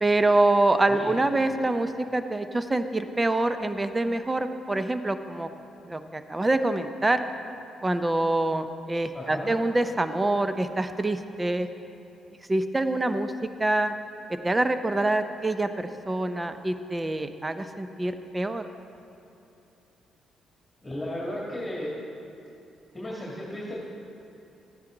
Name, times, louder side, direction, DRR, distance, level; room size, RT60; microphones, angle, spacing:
voice 1, 0.0-5.5 5.8-7.2 7.8-11.7 12.5-13.3 13.6-14.0 14.4-18.6, right 2 dB, 20° right, 9 dB, 0.6 m, -25 dB
voice 2, 9.1-9.5 20.8-21.9 22.9-23.8, left 1 dB, 15° left, -6 dB, 2.3 m, -34 dB
12.5 x 9.7 x 3.9 m, 2.8 s
cardioid pair, 90°, 0 cm